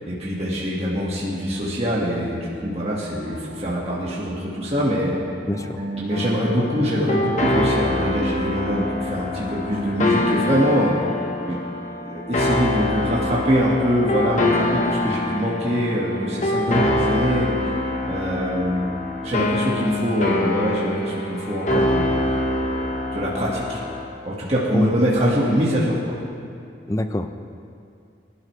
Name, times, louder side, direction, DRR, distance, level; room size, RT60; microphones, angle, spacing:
voice 1, 0.1-5.1 6.0-10.9 11.5-11.6 12.0-17.8 18.1-18.9 19.2-22.1 22.6-23.8 24.2-26.1, equal, 35° right, -5 dB, 1.8 m, -24 dB
sound 1, 2.7-6.6 6.9-10.7, right 2 dB, 55° right, 3.8 m, -37 dB
voice 2, 5.5-5.8 16.7-16.9 24.7-24.9 26.9-27.4, left 1 dB, 15° left, 8 dB, 0.5 m, -25 dB
sound 2, 6.1-24.1, left 1 dB, 40° left, 1.2 m, -25 dB
24.0 x 11.5 x 3.3 m, 2.5 s
head